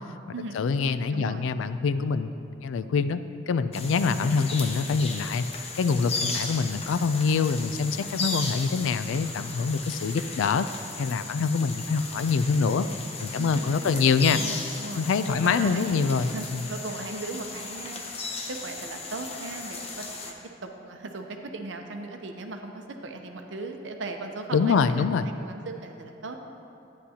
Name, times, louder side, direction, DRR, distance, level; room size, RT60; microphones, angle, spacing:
voice 1, 0.5-2.3 2.6-3.2 3.5-5.5 5.8-10.7 11.0-12.9 13.2-14.4 15.0-16.6 24.5-25.3, left 5 dB, 80° left, 12 dB, 0.3 m, -25 dB
voice 2, 1.1-1.5 4.2-4.4 13.4-14.0 14.3-20.4 20.6-25.1 25.4-26.4, right 2 dB, 70° right, 4 dB, 0.7 m, -38 dB
sound 1, 3.7-20.3, left 3 dB, 30° left, 0.7 m, -36 dB
10.5 x 9.5 x 2.8 m, 2.7 s
head